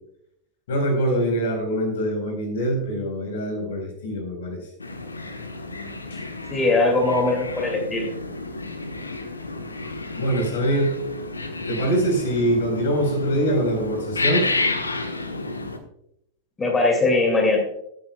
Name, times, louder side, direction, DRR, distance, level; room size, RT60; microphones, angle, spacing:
voice 1, 0.7-4.7 6.1-6.2 10.2-11.0 11.7-14.5, right 1 dB, 60° left, 3 dB, 4.1 m, -24 dB
sound 1, 4.8-15.8, left 2 dB, 80° left, 1.2 m, -31 dB
voice 2, 6.5-8.1 16.6-17.6, left 2 dB, 15° left, 2 dB, 2.2 m, -20 dB
16.0 x 9.3 x 2.3 m, 0.75 s
figure-of-eight pair, 90°, 0 cm